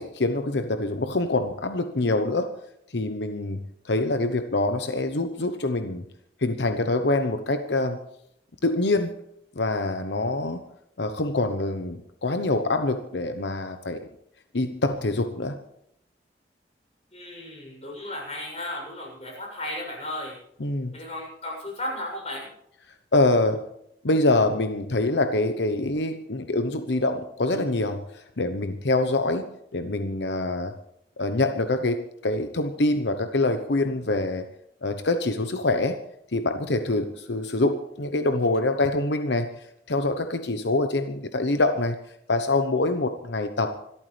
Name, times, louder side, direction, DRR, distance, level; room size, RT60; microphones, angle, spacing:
voice 1, 0.0-2.5 2.9-6.0 6.4-8.0 8.6-9.2 9.6-10.6 11.0-14.1 14.5-15.6 20.6-20.9 23.1-23.6 24.0-30.7 31.2-34.5 34.8-36.0 36.3-42.0 42.3-43.8, left 2 dB, 85° left, 8 dB, 1.0 m, -25 dB
voice 2, 17.1-20.4 20.9-22.5, left 1 dB, 35° left, 0 dB, 7.5 m, -35 dB
26.0 x 13.5 x 3.4 m, 0.76 s
head